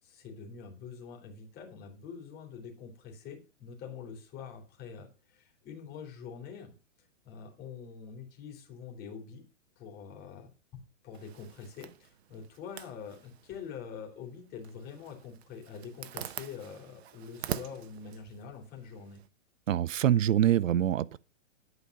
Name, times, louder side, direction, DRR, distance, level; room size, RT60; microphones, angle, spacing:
voice 1, 0.0-6.7 7.2-9.4 9.8-10.5 11.0-19.2, left 6 dB, 25° left, 3.3 m, -45 dB
Zipper (clothing), 11.1-19.3, right 11 dB, 55° right, 0.8 m, -45 dB
voice 2, 19.7-21.2, right 11 dB, 85° right, 0.6 m, -25 dB
11.0 x 5.2 x 6.5 m
hypercardioid pair, 145°, 38 cm